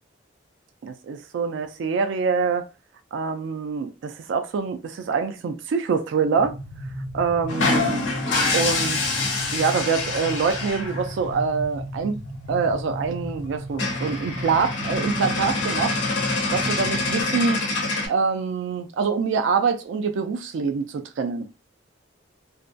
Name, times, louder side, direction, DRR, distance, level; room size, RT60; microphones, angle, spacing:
voice 1, 0.8-2.7 3.1-6.6 7.1-8.0 8.5-12.2 12.5-15.9 16.3-17.6 18.1-21.5, right 5 dB, 75° right, 0.3 m, -25 dB
sound 1, 6.4-17.2, equal, 35° left, 0.5 m, -35 dB
sound 2, 7.5-11.1 12.7-12.8 13.0-13.2 13.5-13.6 13.7-18.1, left 3 dB, 90° left, 0.7 m, -26 dB
2.6 x 2.1 x 2.3 m
head